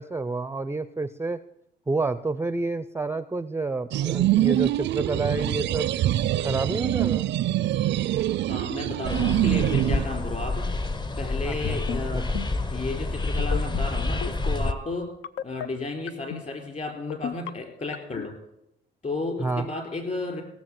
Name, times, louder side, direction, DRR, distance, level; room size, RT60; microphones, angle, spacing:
voice 1, 0.0-1.4 1.9-5.9 6.4-7.3 11.5-12.4 19.4-19.7, right 3 dB, 10° right, 14 dB, 0.4 m, -29 dB
sound 1, 3.9-10.0, right 13 dB, 65° right, 0.4 m, -24 dB
voice 2, 8.5-10.7 11.2-12.3 12.7-15.1 15.4-18.3 19.0-20.4, left 3 dB, 40° left, 4 dB, 4.5 m, -33 dB
sound 2, 9.1-14.7, left 2 dB, 20° left, 0.8 m, -28 dB
sound 3, 11.5-12.0 12.3-12.6 13.4-13.9 14.2-14.5 15.2-15.7 16.1-16.4 17.1-17.5 17.9-18.3, left 11 dB, 85° left, 0.5 m, -32 dB
17.5 x 7.1 x 7.7 m, 0.82 s
cardioid pair, 90°, 20 cm